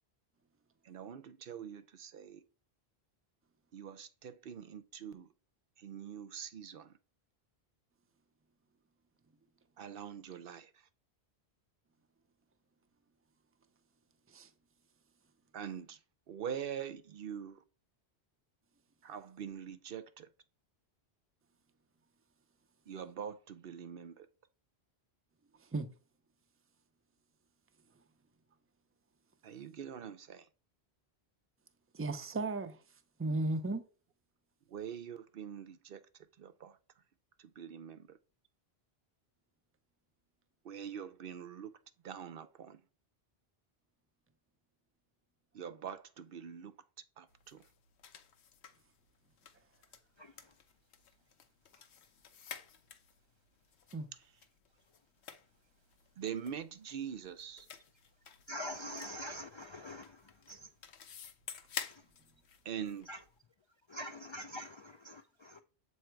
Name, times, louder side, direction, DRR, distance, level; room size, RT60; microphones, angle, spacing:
voice 1, 0.8-2.4 3.7-5.3 5.8-7.0 9.8-10.9 15.5-16.0 16.3-17.6 19.0-20.3 22.9-24.3 29.4-30.5 34.7-36.0 36.4-36.8 37.4-38.2 40.6-41.7 42.0-42.8 45.5-46.7 47.2-47.6 54.1-54.3 56.2-57.7 62.6-63.1, right 8 dB, 65° right, 0.8 m, -44 dB
voice 2, 31.9-32.8 33.2-33.8 53.9-54.1, right 2 dB, 20° right, 0.4 m, -35 dB
sound 1, 47.3-63.4, left 7 dB, 90° left, 1.1 m, -51 dB
voice 3, 50.2-50.6 51.8-51.9 58.5-60.7 61.9-62.1 63.1-63.2 63.9-65.6, equal, 50° left, 0.3 m, -45 dB
7.6 x 3.1 x 4.5 m
omnidirectional pair, 1.1 m